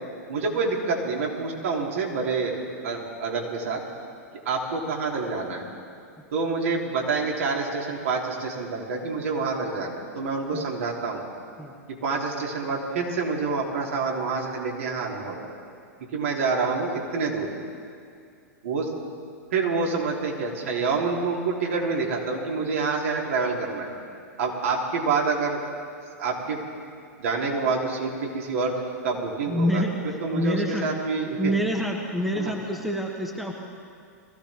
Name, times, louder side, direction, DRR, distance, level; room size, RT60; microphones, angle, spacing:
voice 1, 0.3-2.6 2.8-3.8 4.4-5.6 6.3-11.2 11.9-15.5 16.1-17.5 18.6-18.9 19.5-23.9 24.4-25.6 26.2-26.6 27.2-28.7 29.0-29.8 30.2-31.5 32.3-32.5, right 4 dB, 60° right, -1 dB, 3.0 m, -27 dB
voice 2, 29.5-30.9 31.4-33.5, equal, ahead, 0 dB, 1.5 m, -27 dB
22.5 x 15.0 x 3.6 m, 2.4 s
figure-of-eight pair, 100°, 9 cm